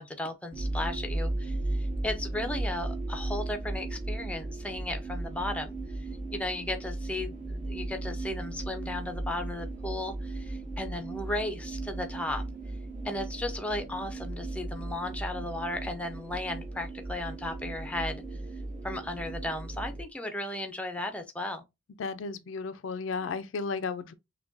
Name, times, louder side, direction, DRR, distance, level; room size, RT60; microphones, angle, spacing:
voice 1, 0.0-12.4 13.0-18.4 18.8-21.6, left 1 dB, 5° left, 0.4 m, -35 dB
sound 1, 0.5-20.0, right 2 dB, 40° right, 0.7 m, -36 dB
voice 2, 22.0-24.1, left 4 dB, 80° left, 0.4 m, -34 dB
5.8 x 2.2 x 2.5 m
head